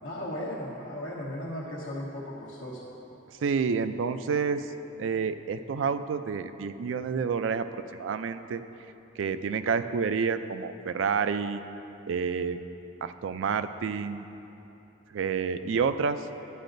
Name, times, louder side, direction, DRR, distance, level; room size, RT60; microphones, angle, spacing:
voice 1, 0.0-2.9, left 1 dB, 80° left, -7 dB, 1.1 m, -36 dB
voice 2, 3.4-4.7 5.0-7.7 7.9-8.6 9.2-11.6 12.1-12.6 13.0-14.3 15.1-16.3, right 5 dB, 85° right, 10 dB, 0.4 m, -29 dB
12.0 x 9.1 x 2.6 m, 3.0 s
head